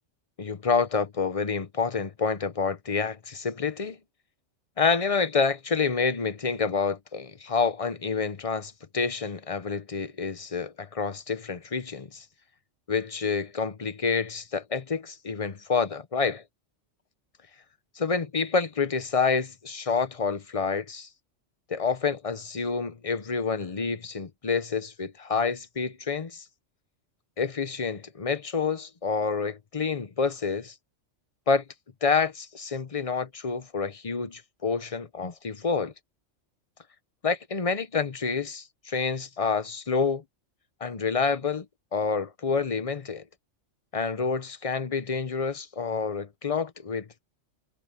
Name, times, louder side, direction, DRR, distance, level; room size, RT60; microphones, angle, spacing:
voice 1, 0.4-4.0 4.8-12.2 12.9-16.4 18.0-21.1 21.7-26.4 27.4-30.7 31.5-31.6 32.0-35.9 37.2-40.2 40.8-41.7 41.9-43.2 43.9-47.2, left 5 dB, 30° left, 0.9 m, -28 dB
omnidirectional pair, 1.3 m